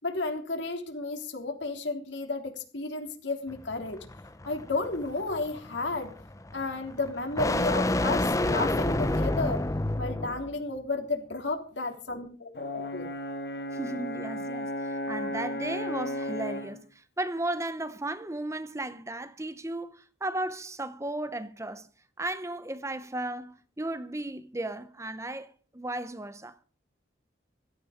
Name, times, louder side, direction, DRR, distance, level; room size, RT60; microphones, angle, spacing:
voice 1, 0.0-4.0 4.4-6.1 6.5-9.6 10.0-13.1, left 3 dB, 85° left, 3.4 m, -32 dB
sound 1, 3.5-10.5, left 1 dB, 20° left, 0.8 m, -29 dB
Brass instrument, 12.6-16.8, equal, 60° left, 2.2 m, -34 dB
voice 2, 13.7-21.9 22.2-26.6, right 1 dB, 15° right, 0.8 m, -35 dB
16.0 x 13.0 x 5.1 m
head